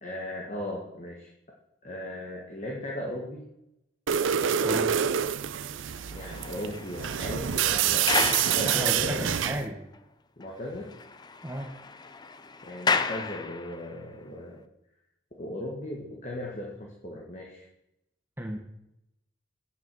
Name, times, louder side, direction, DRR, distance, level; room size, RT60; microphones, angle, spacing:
voice 1, 0.0-1.3 1.8-3.5 6.1-9.4 10.4-10.9 12.6-14.6 15.4-17.7, left 1 dB, 35° left, -1 dB, 1.6 m, -37 dB
sound 1, 4.1-9.7, right 9 dB, 75° right, 0.5 m, -27 dB
voice 2, 4.6-5.1 8.6-9.9 11.4-11.7 18.4-18.6, right 1 dB, 10° right, 2 dB, 0.9 m, -34 dB
sound 2, 5.9-9.4 9.9-10.0 10.4-10.5 10.8-14.0, left 4 dB, 20° left, 0.4 m, -33 dB
9.7 x 7.7 x 6.1 m, 0.85 s
head